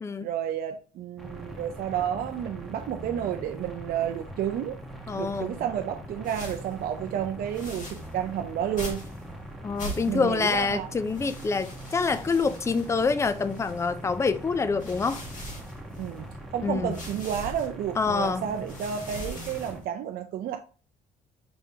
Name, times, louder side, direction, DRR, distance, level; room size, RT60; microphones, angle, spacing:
voice 1, 0.2-4.8 5.2-9.0 10.1-10.9 16.0-20.6, right 9 dB, 60° right, 0.5 m, -31 dB
sound 1, 1.2-19.8, right 1 dB, ahead, 1.0 m, -42 dB
voice 2, 5.1-5.6 9.6-15.2 16.6-17.0 18.0-18.5, left 4 dB, 15° left, 0.4 m, -26 dB
sound 2, 6.2-6.7 7.5-8.1 8.8-9.2 9.8-10.3 11.0-14.0 14.6-16.2 16.9-17.7 18.2-19.8, equal, 50° left, 1.9 m, -41 dB
5.2 x 3.5 x 2.7 m
cardioid pair, 110°, 17 cm